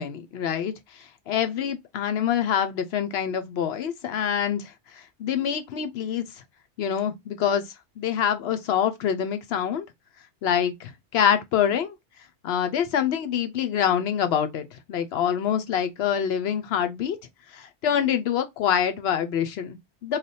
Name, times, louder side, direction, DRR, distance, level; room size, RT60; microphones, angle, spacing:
voice 1, 0.0-6.2 6.8-7.6 8.0-9.9 10.4-11.9 12.4-17.2 17.5-20.2, left 8 dB, 70° left, 0.8 m, -26 dB
3.2 x 2.2 x 4.0 m
omnidirectional pair, 1.1 m